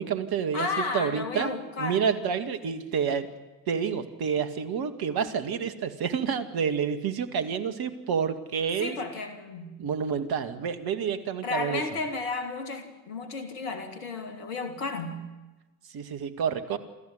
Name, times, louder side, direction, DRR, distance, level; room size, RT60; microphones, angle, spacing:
voice 1, 0.0-3.3 3.7-9.0 9.8-11.8 15.9-16.8, right 7 dB, 55° right, 10 dB, 2.3 m, -29 dB
voice 2, 0.5-2.1 8.8-9.8 11.4-15.2, left 3 dB, 80° left, 10 dB, 3.1 m, -33 dB
27.0 x 14.5 x 9.7 m, 1.1 s
hypercardioid pair, 50°, 43 cm